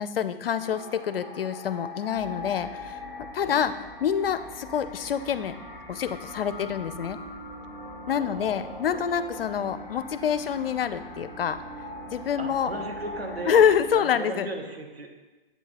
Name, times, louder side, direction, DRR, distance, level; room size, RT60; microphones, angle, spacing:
voice 1, 0.0-3.0 3.3-3.7 4.0-5.5 5.9-7.2 8.1-11.6 12.1-12.7 13.5-14.5, left 8 dB, 70° left, 12 dB, 0.5 m, -26 dB
sound 1, 0.6-13.7, left 3 dB, 20° left, 0.8 m, -42 dB
sound 2, 2.1-14.0, right 1 dB, 25° right, 1.7 m, -44 dB
voice 2, 8.1-9.0 9.6-9.7 12.4-13.6 13.9-15.2, right 2 dB, 85° right, 2 dB, 1.1 m, -37 dB
8.0 x 2.7 x 4.6 m, 1.1 s
figure-of-eight pair, 130°, 30 cm